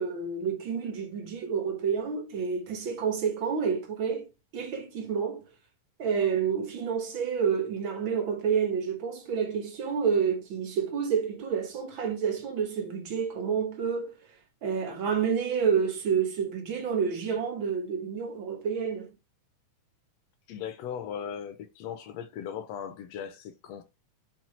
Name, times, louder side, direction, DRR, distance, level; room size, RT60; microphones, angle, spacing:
voice 1, 0.0-4.3 4.5-5.4 6.0-14.1 14.6-19.1, right 6 dB, 55° right, 1.4 m, -29 dB
voice 2, 20.5-23.8, left 8 dB, 75° left, 1.7 m, -38 dB
5.7 x 4.7 x 4.3 m
omnidirectional pair, 3.6 m